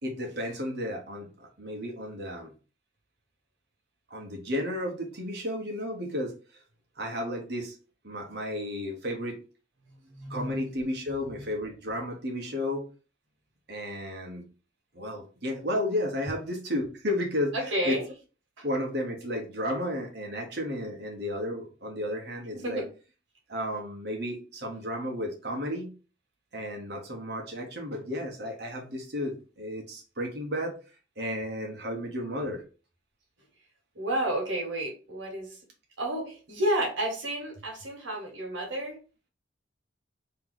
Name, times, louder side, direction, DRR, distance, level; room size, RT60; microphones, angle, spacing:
voice 1, 0.0-2.5 4.1-6.3 7.0-7.7 8.0-9.4 10.3-12.9 13.7-14.4 14.9-18.0 18.6-22.8 23.5-25.9 26.5-30.7 31.2-32.6, left 1 dB, 60° right, 1 dB, 1.2 m, -33 dB
voice 2, 10.1-10.7 11.1-11.3 17.5-18.0 18.6-18.7 22.5-22.8 33.9-35.5 36.0-38.9, right 1 dB, 90° right, 0 dB, 1.6 m, -31 dB
3.2 x 3.0 x 4.0 m, 0.35 s
head